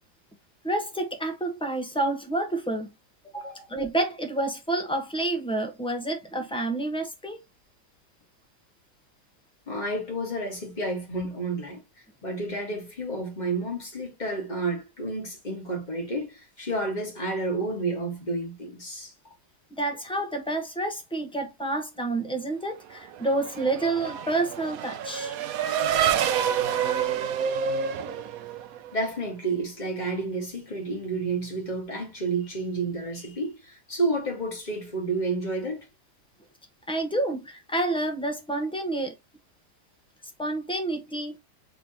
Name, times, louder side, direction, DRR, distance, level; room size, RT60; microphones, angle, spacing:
voice 1, 0.6-2.9 3.3-7.4 19.8-25.4 36.9-39.1 40.4-41.4, right 2 dB, 5° left, 1.0 m, -29 dB
voice 2, 3.4-3.7 9.7-11.8 12.2-19.1 28.9-35.9, right 2 dB, 25° left, 1.8 m, -30 dB
Race car auto racing / Accelerating revving vroom, 23.0-29.1, right 8 dB, 65° right, 1.0 m, -28 dB
4.9 x 3.3 x 2.9 m
omnidirectional pair, 1.9 m